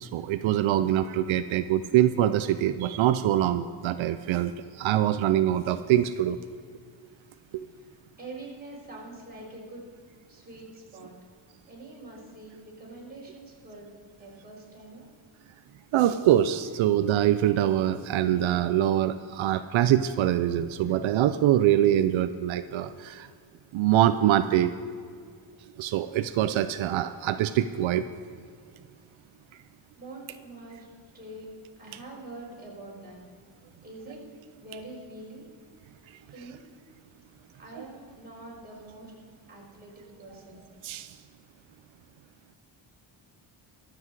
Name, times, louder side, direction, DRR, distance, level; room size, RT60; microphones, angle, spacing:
voice 1, 0.0-4.5 4.8-6.4 7.5-7.7 15.9-23.3 23.7-24.7 25.8-28.1 40.8-41.1, right 12 dB, 85° right, 11 dB, 0.6 m, -24 dB
voice 2, 8.2-9.8 10.3-11.2 11.7-15.1 30.0-30.9 31.1-31.5 31.8-33.2 33.8-34.2 34.6-35.5 36.3-36.6 37.6-39.1 39.5-40.7, right 2 dB, 20° right, -4 dB, 4.0 m, -44 dB
23.0 x 7.9 x 4.7 m, 2.1 s
wide cardioid pair, 165°, 46 cm